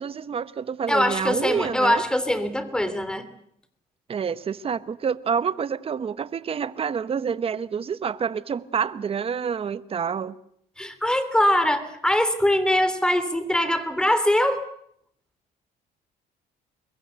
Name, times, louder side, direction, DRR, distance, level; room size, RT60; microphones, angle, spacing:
voice 1, 0.0-2.0 4.1-10.4, right 7 dB, 35° right, 1.0 m, -28 dB
voice 2, 0.9-3.3 10.8-14.6, left 1 dB, 5° left, 3.2 m, -22 dB
23.5 x 21.5 x 8.1 m
cardioid pair, 110°, 17 cm